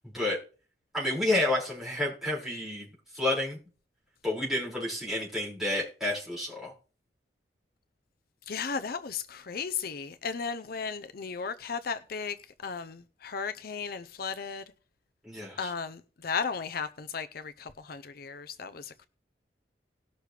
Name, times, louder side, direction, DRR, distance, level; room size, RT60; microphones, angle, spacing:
voice 1, 0.9-2.9 3.1-3.6 4.2-6.7 15.2-15.7, left 1 dB, ahead, 5.7 m, -30 dB
voice 2, 8.5-12.4 12.6-14.6 15.6-19.1, left 5 dB, 60° left, 0.6 m, -35 dB
19.0 x 6.5 x 3.3 m
head